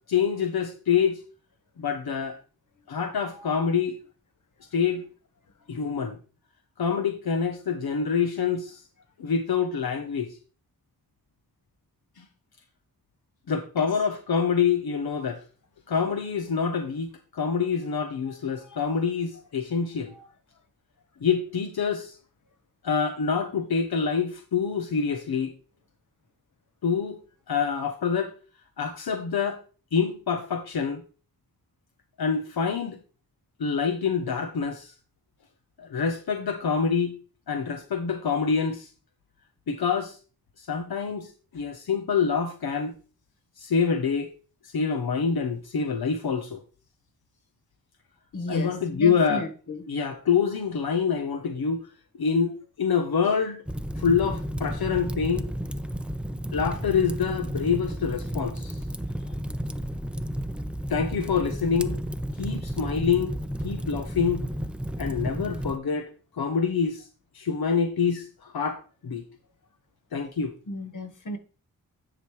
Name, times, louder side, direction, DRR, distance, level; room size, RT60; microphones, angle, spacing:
voice 1, 0.1-1.2 1.8-2.4 2.9-4.0 4.7-5.0 5.7-6.2 6.8-8.8 9.2-10.3 12.2-12.3 13.5-15.4 15.9-20.1 21.2-22.2 22.8-25.5 26.8-27.2 27.5-28.3 28.8-29.6 29.9-31.0 32.2-33.0 33.6-34.9 35.8-37.2 37.5-38.9 39.7-40.2 40.6-42.9 43.6-44.3 44.6-46.6 48.5-49.4 49.9-51.9 52.2-53.6 54.0-55.5 56.5-58.8 60.9-62.0 62.4-63.4 63.6-64.4 65.0-67.0 67.3-69.2 70.1-70.5, left 6 dB, 80° left, 0.9 m, -26 dB
voice 2, 3.3-3.7 13.8-13.9 18.3-18.4 18.7-18.8 20.1-20.2 48.3-49.8 70.7-71.4, left 1 dB, 55° left, 1.3 m, -35 dB
Fire, 53.7-65.8, equal, 5° right, 0.4 m, -32 dB
9.9 x 5.1 x 3.1 m
wide cardioid pair, 70°, 37 cm